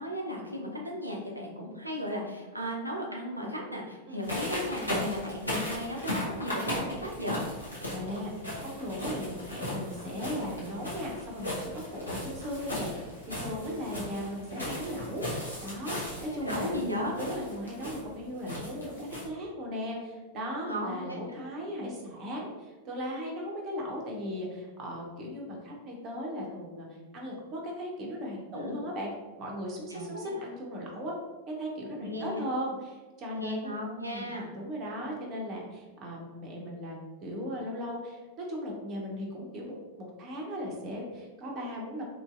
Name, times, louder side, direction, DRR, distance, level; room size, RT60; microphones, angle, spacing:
voice 1, 0.0-7.4 16.2-17.1 20.6-21.2 28.5-28.8 29.9-30.2 32.0-32.4 33.3-34.5, equal, 85° right, -1 dB, 0.5 m, -35 dB
sound 1, 4.2-19.2, left 1 dB, 85° left, 0.8 m, -36 dB
voice 2, 7.9-8.3 8.6-15.2 15.6-16.8 17.2-26.9 27.1-29.1 29.4-31.1 31.5-42.0, equal, 35° right, -1 dB, 0.7 m, -37 dB
3.0 x 2.6 x 2.4 m, 1.2 s
figure-of-eight pair, 90°, 0 cm